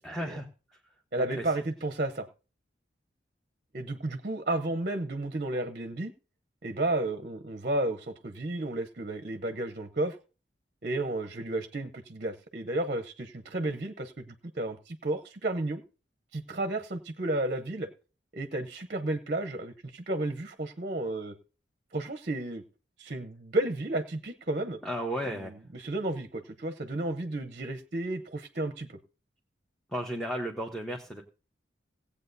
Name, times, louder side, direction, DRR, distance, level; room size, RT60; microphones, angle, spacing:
voice 1, 0.0-0.5 1.2-1.4 24.8-25.5 29.9-31.2, equal, ahead, 0 dB, 1.0 m, -34 dB
voice 2, 1.1-2.3 3.7-6.1 6.6-10.2 10.8-15.8 16.3-17.9 18.3-21.3 21.9-22.6 23.0-24.8 25.3-28.9, right 2 dB, 45° right, 8 dB, 0.8 m, -32 dB
17.5 x 8.4 x 2.7 m, 0.34 s
head